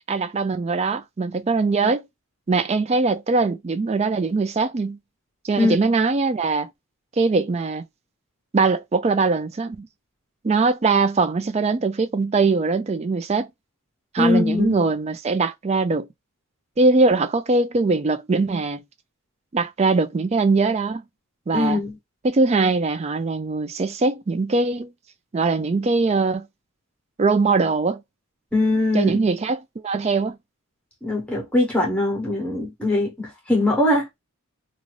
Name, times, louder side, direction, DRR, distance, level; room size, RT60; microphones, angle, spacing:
voice 1, 0.1-2.0 2.5-5.0 5.4-6.7 7.2-7.8 8.5-9.9 10.4-13.5 14.1-16.1 16.8-18.8 19.5-21.0 21.5-21.8 22.2-24.9 25.3-26.5 27.2-28.0 28.9-30.4, right 3 dB, 30° right, 0.3 m, -21 dB
voice 2, 14.2-14.7 21.5-22.0 28.5-29.1 31.0-34.1, left 2 dB, 5° left, 1.0 m, -21 dB
2.5 x 2.5 x 3.1 m
head